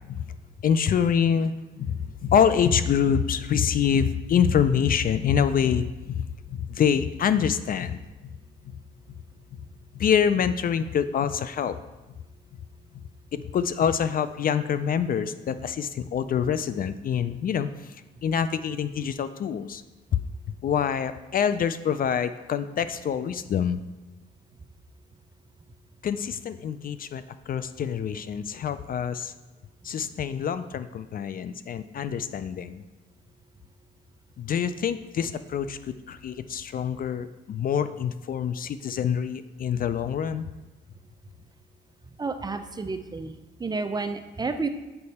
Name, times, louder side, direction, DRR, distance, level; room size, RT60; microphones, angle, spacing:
voice 1, 0.6-8.0 8.7-8.8 9.5-9.6 9.9-11.8 13.3-17.9 18.2-19.8 20.1-20.2 20.6-23.8 26.0-29.3 29.8-32.8 34.4-40.5, left 8 dB, 45° left, 12 dB, 0.4 m, -26 dB
voice 2, 42.2-44.7, right 4 dB, 20° right, 8 dB, 0.5 m, -31 dB
6.7 x 5.4 x 4.1 m, 1.1 s
cardioid pair, 90°, 20 cm